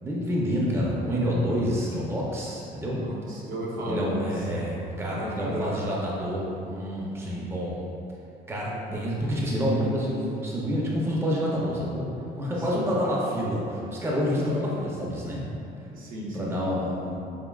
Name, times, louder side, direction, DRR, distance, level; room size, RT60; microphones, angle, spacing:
voice 1, 0.0-3.0 3.9-7.8 8.5-12.1 12.4-15.4 16.3-17.2, equal, 15° right, -5 dB, 0.6 m, -28 dB
voice 2, 2.9-4.4 5.2-5.8 7.1-7.4 8.6-9.1 12.6-12.9 15.9-16.5, right 1 dB, 55° right, -3 dB, 0.7 m, -34 dB
5.0 x 2.8 x 2.3 m, 2.7 s
cardioid pair, 110°, 17 cm